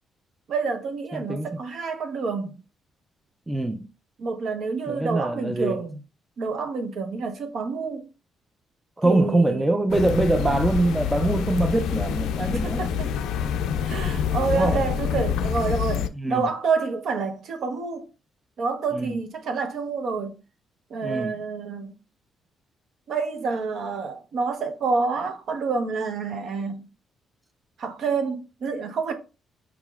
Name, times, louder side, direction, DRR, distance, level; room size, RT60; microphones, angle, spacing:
voice 1, 0.5-2.5 4.2-6.0 6.4-8.1 9.0-9.6 12.6-13.1 13.9-18.1 18.6-20.4 20.9-21.9 23.1-26.8 27.8-29.1, right 4 dB, 65° right, 0.8 m, -28 dB
voice 2, 1.1-1.5 3.5-3.9 4.9-5.8 9.0-12.9 14.5-14.8 16.1-16.5 18.9-19.2 21.0-21.4, right 2 dB, 15° right, 0.4 m, -24 dB
sound 1, 9.9-16.1, left 7 dB, 85° left, 0.3 m, -26 dB
4.8 x 2.9 x 2.3 m
cardioid pair, 90°, 0 cm